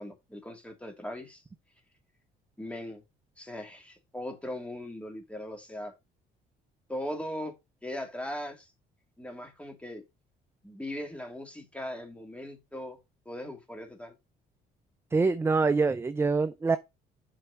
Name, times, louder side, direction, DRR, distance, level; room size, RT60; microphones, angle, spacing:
voice 1, 0.0-1.4 2.6-3.0 3.4-6.0 6.9-7.6 7.8-8.7 9.2-10.0 10.6-13.0 13.3-14.1, left 1 dB, 5° left, 2.4 m, -39 dB
voice 2, 15.1-16.8, right 4 dB, 15° right, 0.5 m, -25 dB
7.7 x 4.6 x 5.2 m
cardioid pair, 110°, 17 cm